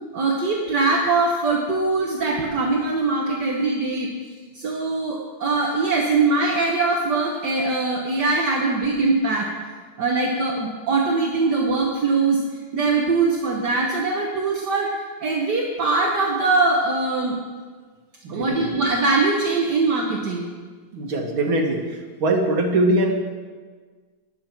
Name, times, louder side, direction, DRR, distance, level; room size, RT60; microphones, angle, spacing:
voice 1, 0.1-4.1 4.5-9.5 10.0-12.4 12.7-14.9 15.2-17.4 18.3-20.5, right 3 dB, 60° right, -1 dB, 1.7 m, -22 dB
voice 2, 18.2-18.7 20.9-23.1, right 2 dB, 80° right, 1 dB, 2.5 m, -22 dB
20.0 x 7.5 x 4.5 m, 1.5 s
omnidirectional pair, 2.2 m